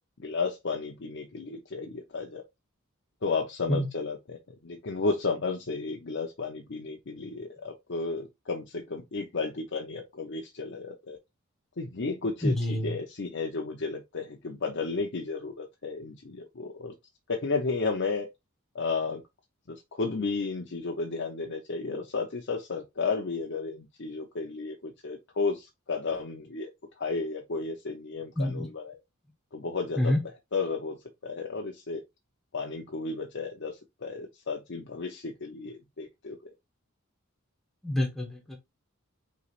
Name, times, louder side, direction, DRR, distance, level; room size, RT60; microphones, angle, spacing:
voice 1, 0.2-2.4 3.2-11.2 11.8-16.9 17.3-18.3 18.7-19.2 19.7-26.7 27.0-29.0 29.5-30.2 30.5-31.0 31.2-32.0 32.5-36.4, left 4 dB, 60° left, 0.7 m, -33 dB
voice 2, 12.4-12.9 28.4-28.7 30.0-30.2 37.8-38.6, left 1 dB, ahead, 1.1 m, -27 dB
5.7 x 3.2 x 2.5 m
head